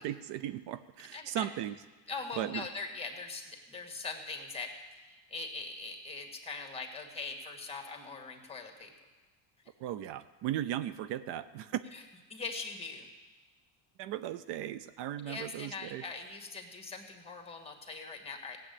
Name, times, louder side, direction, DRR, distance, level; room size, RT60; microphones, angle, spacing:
voice 1, 0.0-1.8 2.4-2.7 9.8-11.8 14.0-16.0, right 12 dB, 70° right, 14 dB, 0.7 m, -37 dB
voice 2, 1.1-1.5 2.1-8.9 11.9-12.0 12.3-13.1 15.2-18.6, left 4 dB, 15° left, 3 dB, 2.1 m, -42 dB
16.5 x 8.0 x 8.6 m, 1.3 s
cardioid pair, 120°, 44 cm